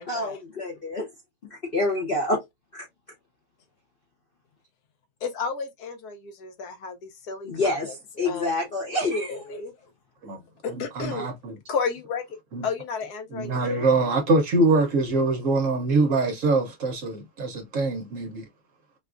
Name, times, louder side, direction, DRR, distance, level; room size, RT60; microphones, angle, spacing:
voice 1, 0.1-1.0 1.7-2.4 2.7-2.9 7.5-9.3, left 2 dB, 50° left, 0.7 m, -27 dB
voice 2, 5.2-7.9 8.2-8.6 9.1-9.7 10.8-11.3 11.7-12.4 12.6-13.9, left 5 dB, 70° left, 1.2 m, -32 dB
voice 3, 10.7-11.6 12.5-12.7 13.3-18.4, right 3 dB, 60° right, 1.0 m, -24 dB
4.5 x 2.3 x 2.4 m
omnidirectional pair, 1.8 m